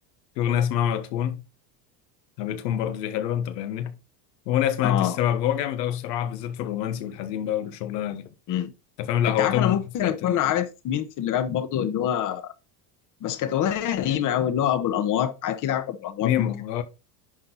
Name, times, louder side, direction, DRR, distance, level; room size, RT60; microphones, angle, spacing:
voice 1, 0.4-1.4 2.4-3.9 4.5-8.3 9.0-10.4 16.2-16.8, left 10 dB, 85° left, 1.4 m, -26 dB
voice 2, 4.8-5.2 8.5-8.7 9.2-12.5 13.2-16.5, left 10 dB, 40° left, 1.1 m, -25 dB
10.5 x 4.5 x 3.9 m
supercardioid pair, 130°, 48 cm